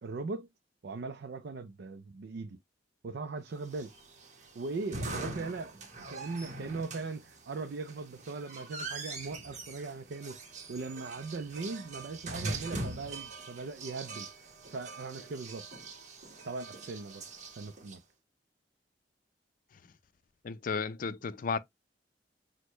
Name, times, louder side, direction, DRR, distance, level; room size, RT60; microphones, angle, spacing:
voice 1, 0.0-0.5 0.8-2.6 3.0-3.9 4.5-5.7 6.1-10.4 10.7-14.3 14.7-15.7 16.4-17.3 17.6-18.0, right 3 dB, 60° right, 0.4 m, -39 dB
sound 1, 3.7-18.0, right 2 dB, 40° right, 1.1 m, -42 dB
voice 2, 20.4-21.6, left 5 dB, 50° left, 0.4 m, -33 dB
6.2 x 2.1 x 3.0 m
head